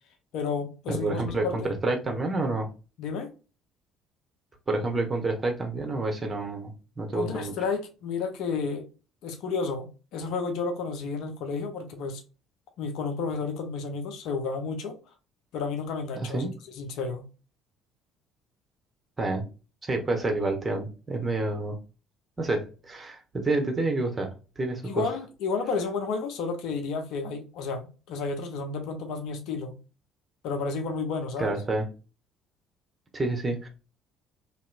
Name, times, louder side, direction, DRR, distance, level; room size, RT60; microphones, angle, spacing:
voice 1, 0.3-1.7 3.0-3.3 7.1-8.9 9.2-12.2 12.8-15.0 15.5-16.5 16.8-17.2 24.8-29.8 30.4-31.5, left 4 dB, 65° left, 0.6 m, -31 dB
voice 2, 0.9-2.7 4.7-7.5 16.2-16.5 19.2-19.5 19.8-21.8 22.4-25.0 31.4-31.9 33.1-33.7, right 2 dB, 25° right, 1.1 m, -28 dB
3.0 x 2.8 x 2.3 m
figure-of-eight pair, 55°, 0 cm